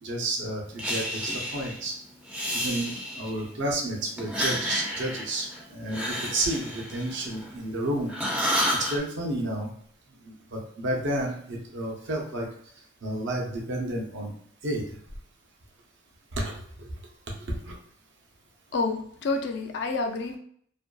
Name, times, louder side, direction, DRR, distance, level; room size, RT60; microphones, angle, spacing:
voice 1, 0.0-1.9 2.5-8.1 8.7-9.7 10.3-12.5 13.0-14.3 14.6-14.8 16.3-16.9 17.5-17.7, right 1 dB, 65° right, -1 dB, 0.5 m, -31 dB
Breathing, 0.8-1.8 2.2-3.5 4.2-7.8 8.1-9.0, equal, 5° right, 0.4 m, -30 dB
voice 2, 18.7-20.4, left 3 dB, 60° left, 5 dB, 0.4 m, -28 dB
2.5 x 2.2 x 2.3 m, 0.63 s
head